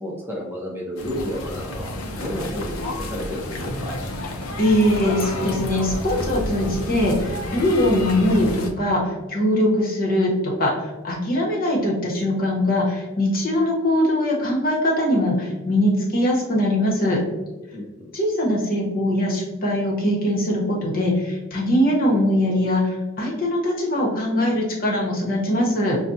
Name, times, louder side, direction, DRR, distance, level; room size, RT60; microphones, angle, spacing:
voice 1, 0.0-4.0 17.7-18.1, equal, 10° right, -3 dB, 0.6 m, -31 dB
sound 1, 1.0-8.7, left 1 dB, 85° left, 0.6 m, -30 dB
voice 2, 4.6-17.2 18.1-26.0, left 1 dB, 45° left, -3 dB, 1.0 m, -21 dB
5.7 x 2.2 x 2.7 m, 1.1 s
head